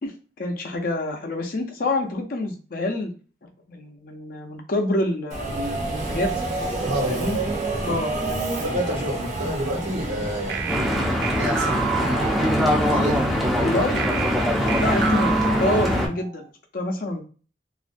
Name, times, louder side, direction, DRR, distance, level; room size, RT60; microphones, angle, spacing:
voice 1, 0.0-3.1 3.4-6.3 7.1-7.4 7.8-8.1 13.6-14.0 14.8-17.2, left 2 dB, 50° left, 3 dB, 0.5 m, -27 dB
Subway metro underground, 5.3-11.5, right 2 dB, 40° right, 0.7 m, -28 dB
voice 2, 6.8-7.3 8.6-10.8 11.2-12.3 12.7-13.2 14.6-14.9, equal, 80° right, -2 dB, 1.2 m, -30 dB
sound 1, 10.5-13.0 14.0-16.5, right 7 dB, 60° right, 0.3 m, -30 dB
Stream / Boat Water vehicle, 10.7-16.1, equal, ahead, 0.5 m, -22 dB
2.4 x 2.2 x 2.5 m, 0.37 s
head